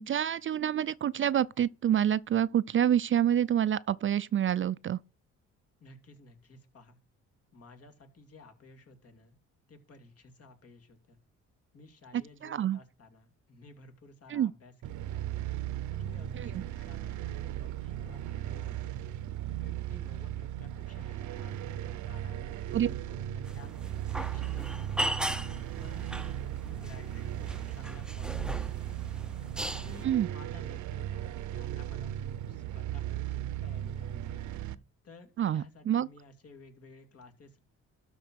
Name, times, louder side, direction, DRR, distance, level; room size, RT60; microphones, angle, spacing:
voice 1, 0.0-5.0 12.4-12.8 14.3-14.5 16.3-16.6 22.7-22.9 30.0-30.3 35.4-36.1, right 10 dB, 40° right, 0.4 m, -27 dB
voice 2, 5.8-7.0 7.5-9.4 9.7-11.2 11.7-15.3 15.9-19.0 19.6-23.7 24.2-25.4 25.8-29.1 29.7-34.4 35.0-37.6, left 3 dB, 50° left, 2.7 m, -54 dB
sound 1, 14.8-34.7, right 12 dB, 75° right, 0.8 m, -37 dB
sound 2, 23.4-30.0, right 1 dB, 5° right, 0.6 m, -38 dB
12.5 x 4.5 x 6.3 m
cardioid pair, 90°, 30 cm